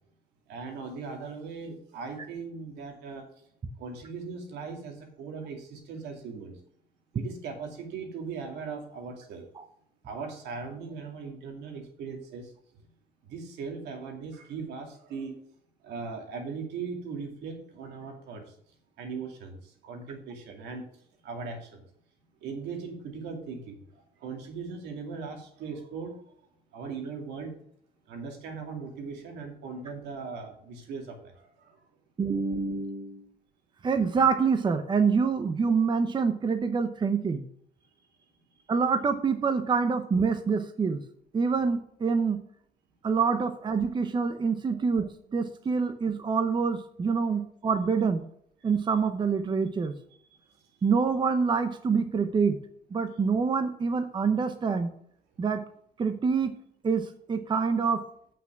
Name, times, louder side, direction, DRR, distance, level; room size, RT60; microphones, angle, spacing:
voice 1, 0.5-3.3 3.8-6.6 7.1-9.5 10.0-12.5 12.8-12.9 13.3-15.4 15.8-18.5 19.0-20.8 21.2-21.8 22.4-23.8 24.2-26.2 26.7-27.5 28.1-31.8 44.7-44.8 47.3-47.4 48.6-48.7, right 5 dB, 80° right, 3 dB, 2.4 m, -39 dB
voice 2, 32.2-33.2 33.8-37.4 38.7-41.0 41.3-42.4 43.0-48.2 48.6-49.9 50.8-52.6 52.9-54.9 55.4-55.6 56.0-56.5 56.8-58.0, right 5 dB, 25° right, 9 dB, 0.8 m, -26 dB
8.4 x 6.0 x 5.9 m, 0.66 s
cardioid pair, 110°, 17 cm